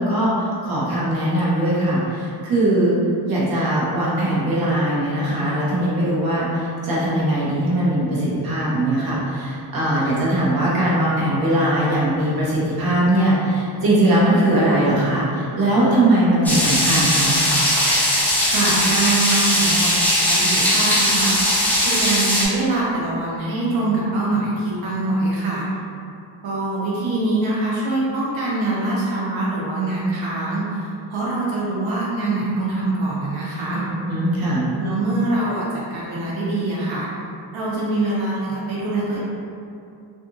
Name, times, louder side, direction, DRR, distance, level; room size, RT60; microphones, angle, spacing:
voice 1, 0.0-2.9 3.2-17.4 33.8-34.7, right 1 dB, 50° right, -7 dB, 0.8 m, -20 dB
sound 1, 16.4-22.4, equal, 5° left, 0.5 m, -19 dB
voice 2, 18.4-21.4 21.8-25.7 26.4-33.8 34.7-35.7 35.9-37.1 37.5-39.2, right 2 dB, 85° right, -6 dB, 0.7 m, -24 dB
2.8 x 2.4 x 2.5 m, 2.4 s
wide cardioid pair, 125°, 46 cm